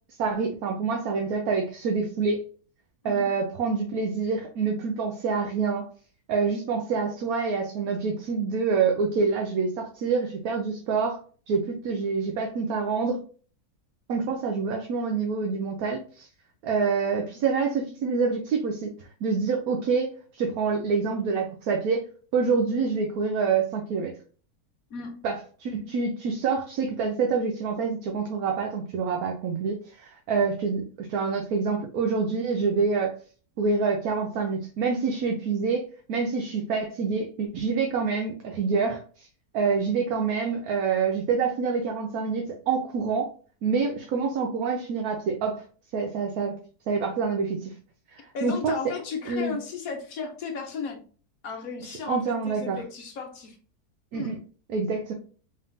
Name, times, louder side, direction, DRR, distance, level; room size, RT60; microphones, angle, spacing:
voice 1, 0.2-2.4 3.0-5.9 6.3-11.2 11.5-13.2 14.1-16.3 16.6-22.1 22.3-24.1 25.2-33.1 33.6-39.3 39.5-43.3 43.6-45.6 45.9-46.6 46.9-47.7 48.1-48.9 49.3-49.6 51.8-52.8 54.1-54.4 54.7-55.1, right 5 dB, 70° right, 2 dB, 1.1 m, -27 dB
voice 2, 24.9-25.2 48.3-51.0 51.4-53.6 54.1-54.3, left 5 dB, 65° left, 4 dB, 1.2 m, -35 dB
3.9 x 3.5 x 2.6 m, 0.40 s
omnidirectional pair, 1.7 m